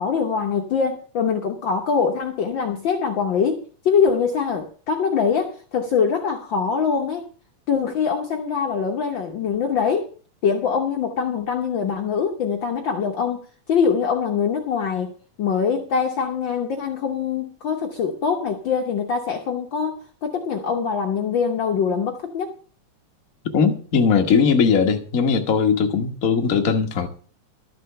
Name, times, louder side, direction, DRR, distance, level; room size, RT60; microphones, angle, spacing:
voice 1, 0.0-7.2 7.7-10.1 10.4-13.4 13.7-15.1 15.4-22.5, left 6 dB, 90° left, 1.0 m, -23 dB
voice 2, 23.5-27.1, left 6 dB, 65° left, 0.8 m, -19 dB
12.5 x 6.7 x 6.7 m
omnidirectional pair, 3.7 m